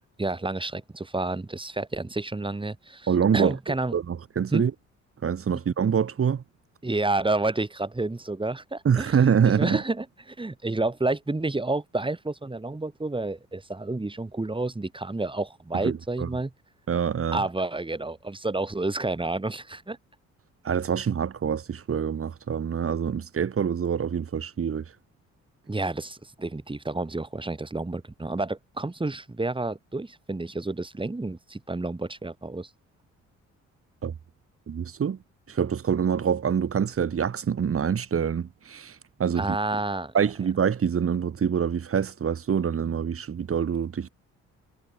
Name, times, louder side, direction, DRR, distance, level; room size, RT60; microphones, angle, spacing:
voice 1, 0.2-3.9 4.5-4.6 6.8-16.5 17.3-20.0 25.7-32.7 39.4-40.3, right 2 dB, 15° right, 7.2 m, -30 dB
voice 2, 3.1-3.5 3.9-4.7 5.2-6.4 8.8-9.8 15.7-16.3 16.9-17.4 20.6-24.8 34.0-34.1 34.7-35.2 35.5-39.6 40.1-44.1, right 7 dB, 45° right, 4.0 m, -25 dB
cardioid pair, 90°, 30 cm